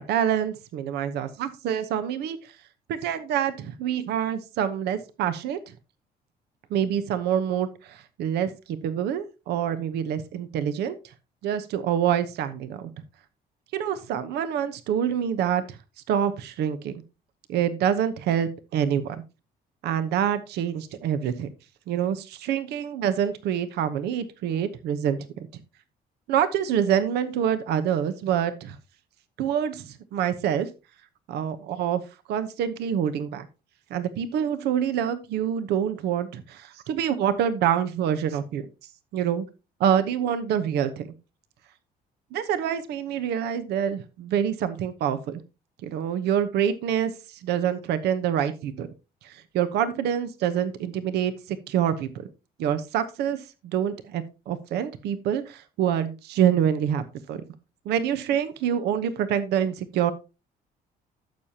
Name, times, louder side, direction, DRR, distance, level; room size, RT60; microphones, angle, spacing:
voice 1, 0.0-2.5 2.9-5.6 6.7-11.0 11.4-12.9 13.7-15.8 16.1-17.0 17.5-19.2 19.8-21.5 21.9-25.5 26.3-28.8 29.4-30.7 31.3-32.0 32.3-33.5 33.9-38.7 39.1-39.5 39.8-41.1 42.3-45.4 45.8-48.9 49.2-52.2 52.6-57.4 57.8-60.1, right 9 dB, 75° right, 12 dB, 1.0 m, -26 dB
11.5 x 7.4 x 2.8 m, 0.28 s
cardioid pair, 110°, 17 cm